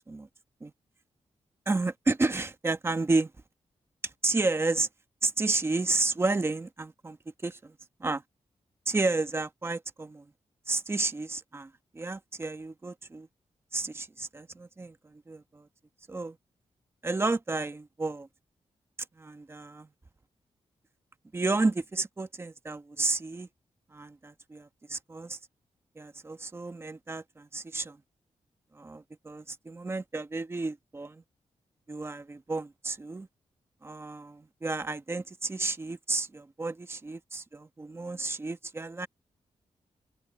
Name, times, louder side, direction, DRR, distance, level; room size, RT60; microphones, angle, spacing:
voice 1, 1.7-3.3 4.2-4.9 5.2-7.2 7.4-7.7 8.0-8.2 8.9-10.2 10.7-13.3 13.7-15.7 16.1-16.4 17.0-18.3 19.2-19.9 21.3-23.5 23.9-25.4 26.0-28.0 28.7-31.2 31.9-33.3 33.8-39.1, right 3 dB, 20° right, 1.1 m, -31 dB
wide cardioid pair, 130°, 11 cm